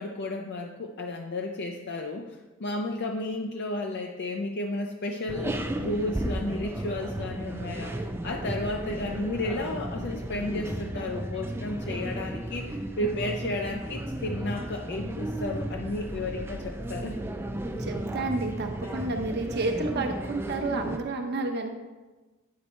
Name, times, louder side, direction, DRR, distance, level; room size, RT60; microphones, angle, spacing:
voice 1, 0.0-2.3 2.6-17.1, left 2 dB, 55° left, 2 dB, 0.5 m, -33 dB
sound 1, 5.3-21.0, right 1 dB, 10° right, 0.4 m, -34 dB
voice 2, 17.8-21.7, right 2 dB, 50° right, 4 dB, 0.9 m, -30 dB
9.4 x 4.1 x 4.4 m, 1.2 s
head